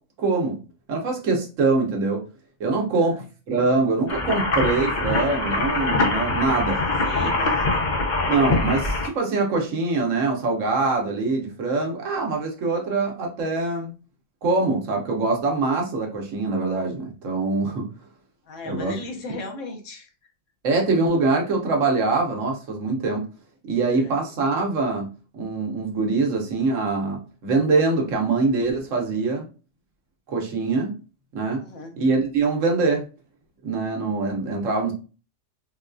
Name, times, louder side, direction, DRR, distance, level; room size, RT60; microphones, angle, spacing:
voice 1, 0.2-0.6 0.9-2.2 2.6-3.2 3.5-6.8 7.2-7.3 8.3-13.9 14.4-17.9 18.7-18.9 20.6-23.2 23.6-25.1 25.3-29.4 30.3-30.9 31.3-31.6 32.0-33.0 33.6-34.9, right 3 dB, 85° right, 1 dB, 1.2 m, -23 dB
voice 2, 2.8-3.2 6.8-7.9 18.4-20.1 23.9-24.2 31.6-31.9, left 2 dB, 80° left, 2 dB, 1.2 m, -37 dB
sound 1, 4.1-9.1, left 2 dB, 50° left, 0.6 m, -23 dB
3.9 x 2.3 x 2.5 m, 0.34 s
omnidirectional pair, 1.3 m